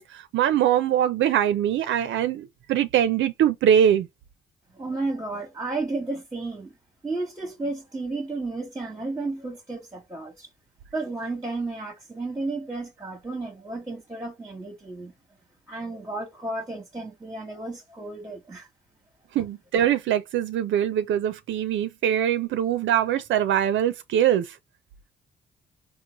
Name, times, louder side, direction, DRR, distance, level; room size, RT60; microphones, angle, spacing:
voice 1, 0.0-4.1 19.3-24.6, right 10 dB, 75° right, 0.5 m, -23 dB
voice 2, 4.7-6.7 7.0-10.5 10.9-15.1 15.7-18.7, right 3 dB, 15° right, 1.0 m, -32 dB
3.8 x 2.0 x 2.9 m
cardioid pair, 90°, 20 cm